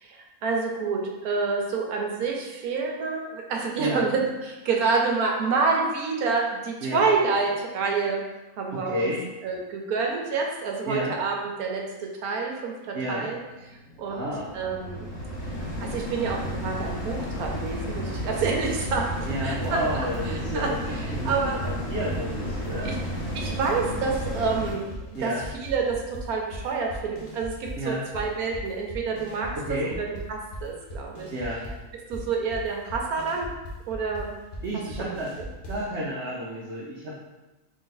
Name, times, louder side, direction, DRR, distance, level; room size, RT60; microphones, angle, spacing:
voice 1, 0.0-8.2 8.6-9.1 9.4-13.4 14.0-14.3 14.5-15.1 15.8-19.8 20.3-20.7 21.2-21.6 22.8-22.9 23.3-24.8 25.2-25.3 25.6-31.3 32.1-33.5 33.9-34.3 35.0-35.5, right 4 dB, 80° right, 0 dB, 1.2 m, -28 dB
voice 2, 8.7-9.2 10.9-11.1 12.9-13.3 14.1-14.5 19.3-20.8 21.1-23.0 25.1-25.4 27.8-28.0 29.5-30.0 31.3-31.7 34.6-35.3 35.7-37.2, equal, 60° right, -5 dB, 0.8 m, -31 dB
sound 1, 13.5-24.7, equal, 65° left, 1.5 m, -32 dB
sound 2, 17.4-19.9 20.1-23.8 24.1-27.9 28.1-35.9, equal, 50° left, 0.6 m, -39 dB
3.5 x 2.6 x 3.8 m, 1.1 s
omnidirectional pair, 1.6 m